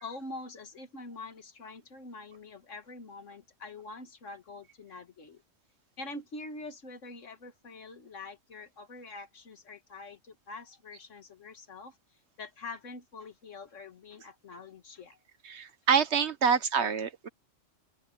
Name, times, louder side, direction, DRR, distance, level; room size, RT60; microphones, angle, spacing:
voice 1, 0.0-5.4 6.0-12.0 12.4-15.2, left 3 dB, 85° left, 2.1 m, -45 dB
voice 2, 15.4-17.3, right 6 dB, 65° right, 1.5 m, -26 dB
open air
omnidirectional pair, 1.3 m